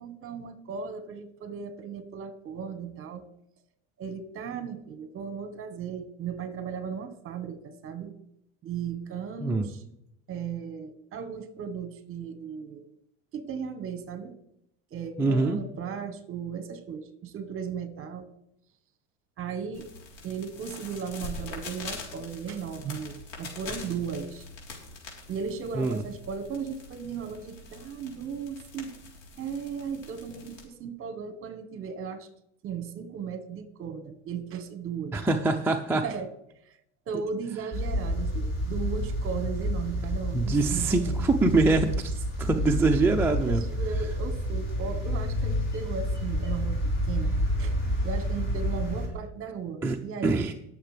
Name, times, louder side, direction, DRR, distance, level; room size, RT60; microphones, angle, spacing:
voice 1, 0.0-3.2 4.0-8.2 8.6-9.8 10.3-13.0 13.3-14.3 14.9-18.3 19.4-19.9 20.2-24.5 25.3-29.0 29.4-32.3 32.6-35.2 35.9-36.3 36.7-36.8 37.1-41.2 43.4-47.3 47.6-47.8 48.0-50.5, right 6 dB, 35° right, 10 dB, 1.3 m, -36 dB
voice 2, 15.2-15.6 25.8-26.0 35.1-36.0 40.3-43.6 49.8-50.0 50.2-50.5, right 3 dB, 5° right, 2 dB, 0.4 m, -24 dB
sound 1, 19.7-30.6, left 3 dB, 85° left, 3.7 m, -44 dB
sound 2, 37.7-49.1, equal, 30° left, 3.5 m, -29 dB
19.5 x 6.8 x 3.3 m, 0.79 s
supercardioid pair, 130°, 37 cm